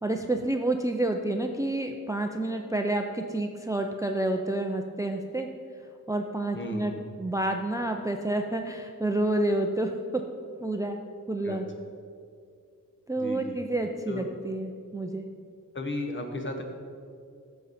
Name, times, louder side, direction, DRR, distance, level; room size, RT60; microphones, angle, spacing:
voice 1, 0.0-5.5 6.1-10.2 10.6-11.0 11.3-11.7 13.1-15.3, right 1 dB, 10° right, 4 dB, 0.4 m, -29 dB
voice 2, 6.5-7.0 11.4-11.6 13.2-13.6 14.1-14.3 15.7-16.6, left 1 dB, 35° left, 3 dB, 1.2 m, -34 dB
15.0 x 6.9 x 4.2 m, 2.3 s
wide cardioid pair, 160°, 32 cm